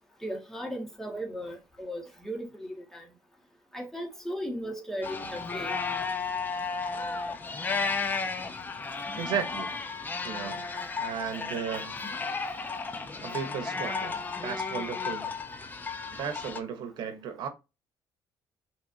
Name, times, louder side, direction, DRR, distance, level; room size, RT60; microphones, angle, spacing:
voice 1, 0.2-3.1 3.7-5.7, equal, 5° left, 1.8 m, -36 dB
sound 1, 5.0-16.6, left 4 dB, 25° left, 0.8 m, -33 dB
voice 2, 9.2-9.7 10.2-10.6 11.0-12.0 13.2-15.3 16.1-17.5, right 7 dB, 70° right, 1.1 m, -35 dB
6.0 x 3.3 x 2.7 m
cardioid pair, 130°, 8 cm